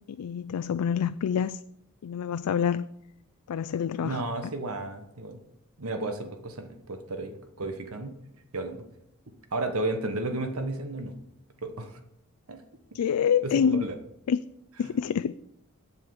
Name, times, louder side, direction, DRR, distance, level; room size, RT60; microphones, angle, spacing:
voice 1, 0.1-1.6 2.0-2.8 3.5-4.2 12.9-13.9 14.3-14.4 14.8-15.3, left 7 dB, 80° left, 14 dB, 0.3 m, -26 dB
voice 2, 4.0-5.4 5.8-8.1 8.5-8.8 9.5-11.1 11.6-12.0 12.5-12.6 13.4-13.9, right 2 dB, 70° right, 7 dB, 1.2 m, -33 dB
8.4 x 7.8 x 7.0 m, 0.80 s
head